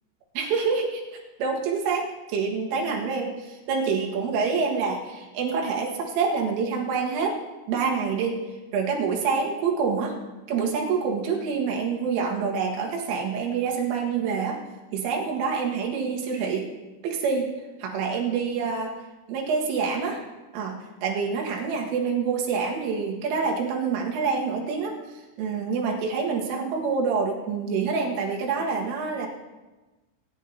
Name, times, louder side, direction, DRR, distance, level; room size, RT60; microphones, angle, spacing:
voice 1, 0.4-1.0 1.4-7.4 7.7-8.4 8.7-10.2 10.5-14.6 14.9-16.7 17.0-18.9 19.3-20.2 20.5-29.3, right 5 dB, 85° right, -1 dB, 4.1 m, -27 dB
21.0 x 9.6 x 2.7 m, 1.1 s
omnidirectional pair, 5.7 m